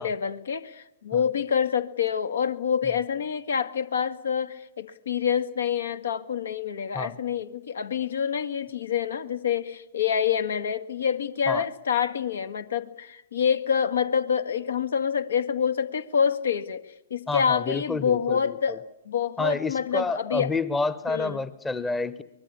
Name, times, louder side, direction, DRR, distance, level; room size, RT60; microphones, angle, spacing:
voice 1, 0.0-16.9 17.1-20.5 21.1-21.4, left 7 dB, 65° left, 12 dB, 2.0 m, -27 dB
voice 2, 17.3-18.8 19.4-22.2, left 3 dB, 10° left, 15 dB, 1.1 m, -29 dB
24.5 x 21.0 x 8.4 m, 0.87 s
figure-of-eight pair, 115°, 0 cm